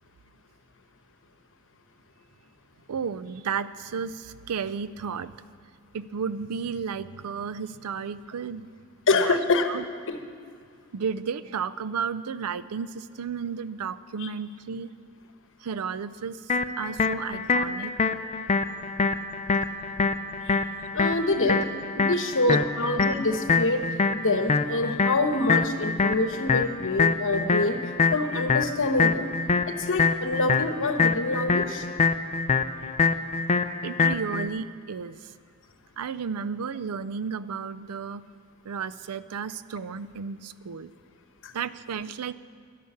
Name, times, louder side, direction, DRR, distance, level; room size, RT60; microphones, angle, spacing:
voice 1, 2.9-5.3 5.9-8.7 9.1-9.4 9.7-9.8 10.9-14.9 15.6-16.5 16.8-18.1 22.5-22.6 33.8-35.3 36.0-38.2 38.6-40.9 41.5-42.3, right 6 dB, 85° right, 15 dB, 0.5 m, -33 dB
voice 2, 9.1-9.7 10.1-10.2 14.2-14.3 20.4-20.6 20.9-21.7 21.9-23.8 24.1-27.8 28.1-29.3 29.7-31.9 41.4-41.5, left 2 dB, 60° left, 7 dB, 1.1 m, -26 dB
sound 1, 16.5-34.5, left 4 dB, 30° left, 0.4 m, -25 dB
12.0 x 11.0 x 7.1 m, 2.2 s
head